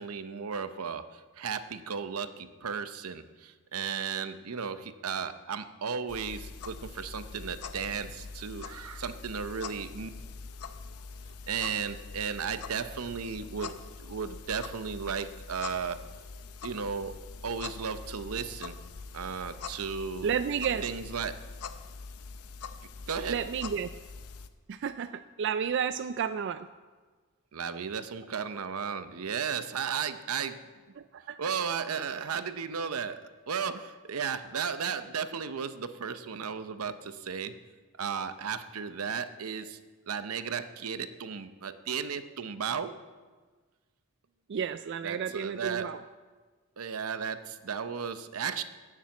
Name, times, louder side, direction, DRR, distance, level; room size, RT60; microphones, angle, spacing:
voice 1, 0.0-10.1 11.5-13.8 14.0-16.0 16.6-17.1 17.4-18.7 19.1-20.3 20.8-21.4 23.1-23.4 27.5-30.6 31.4-37.5 38.0-39.8 40.1-42.9 45.0-45.9 46.8-48.6, right 6 dB, 85° right, 11 dB, 0.7 m, -35 dB
sound 1, 6.1-24.5, left 4 dB, 85° left, 0.7 m, -44 dB
voice 2, 20.2-20.9 23.3-23.9 24.7-26.7 31.0-31.4 44.5-46.0, right 7 dB, 55° right, 11 dB, 0.3 m, -31 dB
11.5 x 7.3 x 8.6 m, 1.4 s
head